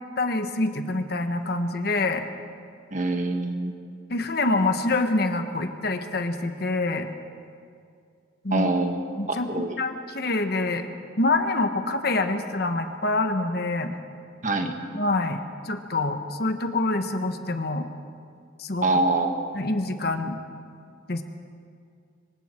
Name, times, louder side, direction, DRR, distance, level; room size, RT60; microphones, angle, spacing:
voice 1, 0.2-2.2 4.1-7.1 8.4-8.7 9.2-9.5 9.8-10.9 11.2-13.9 14.9-15.4 15.6-17.9 18.6-18.9 19.5-20.4 21.1-21.2, left 2 dB, 50° left, 7 dB, 1.2 m, -26 dB
voice 2, 2.9-3.7 8.5-9.8 14.4-14.8 18.8-19.4, right 2 dB, 40° right, 4 dB, 1.6 m, -25 dB
25.5 x 24.0 x 4.5 m, 2.3 s
head